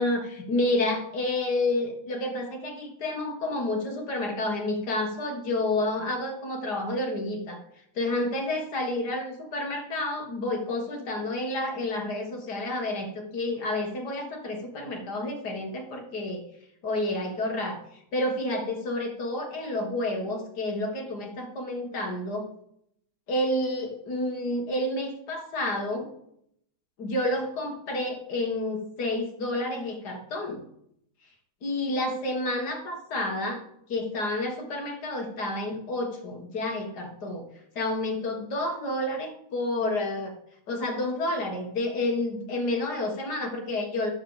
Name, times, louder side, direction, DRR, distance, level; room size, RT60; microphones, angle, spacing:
voice 1, 0.0-7.6 8.0-16.4 16.8-17.8 18.1-22.5 23.3-26.1 27.0-30.6 31.6-33.6 33.9-37.5 37.8-40.4 40.7-44.1, left 1 dB, 55° left, 2 dB, 2.2 m, -29 dB
12.0 x 4.6 x 7.1 m, 0.75 s
omnidirectional pair, 2.2 m